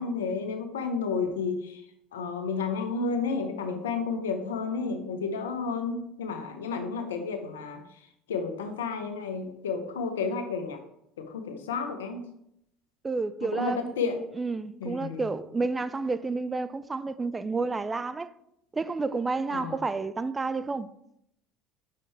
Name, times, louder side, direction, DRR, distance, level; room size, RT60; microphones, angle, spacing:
voice 1, 0.0-1.8 2.1-7.8 8.3-10.8 11.2-12.3 13.5-14.2 14.8-15.3 19.5-19.8, left 4 dB, 85° left, 0.8 m, -31 dB
voice 2, 13.0-13.9 14.4-18.3 18.7-20.9, right 3 dB, 20° right, 0.3 m, -30 dB
5.4 x 5.3 x 3.3 m
hypercardioid pair, 70°, 0 cm